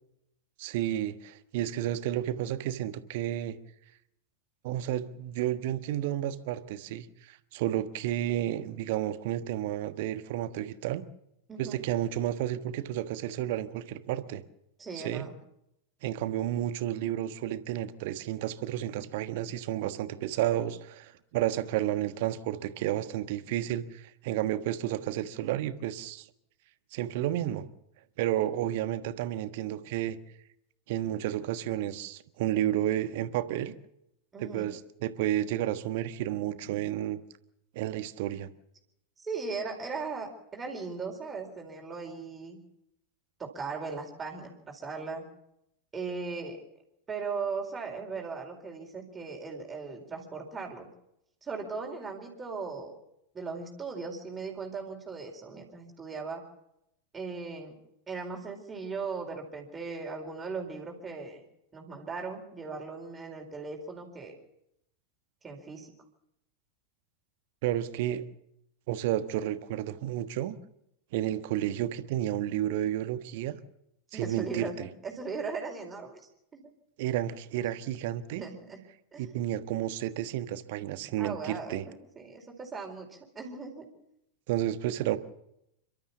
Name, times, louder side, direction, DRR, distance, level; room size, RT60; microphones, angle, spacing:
voice 1, 0.6-3.6 4.6-11.0 11.6-14.4 14.9-15.3 16.0-26.3 26.9-27.7 28.2-30.2 30.9-33.8 34.4-37.2 37.7-38.5 67.6-68.2 68.9-70.6 71.1-73.6 74.1-74.9 77.0-78.4 79.2-81.8 84.5-85.2, right 12 dB, 50° right, 11 dB, 1.4 m, -31 dB
voice 2, 11.5-11.8 14.8-15.3 34.3-34.7 39.2-42.6 43.4-45.2 45.9-46.6 47.1-50.9 51.4-52.9 53.3-56.4 57.1-57.8 58.1-61.4 61.7-64.3 65.4-65.9 74.1-74.8 75.0-76.7 78.3-78.8 79.1-79.2 81.2-83.9, right 4 dB, 15° right, 1 dB, 4.3 m, -38 dB
29.5 x 13.0 x 7.1 m, 0.80 s
figure-of-eight pair, 90°, 0 cm